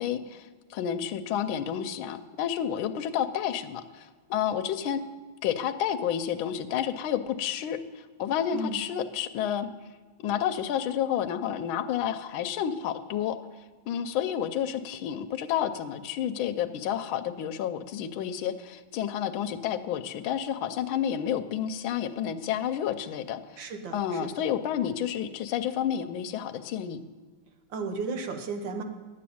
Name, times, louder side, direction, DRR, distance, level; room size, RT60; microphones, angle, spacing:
voice 1, 0.0-5.0 5.4-9.7 10.2-13.4 13.9-23.6 23.9-27.0, left 9 dB, 80° left, 8 dB, 1.4 m, -30 dB
voice 2, 23.6-24.3 27.7-28.8, right 3 dB, 65° right, 6 dB, 1.8 m, -34 dB
10.5 x 7.7 x 8.6 m, 1.4 s
omnidirectional pair, 2.2 m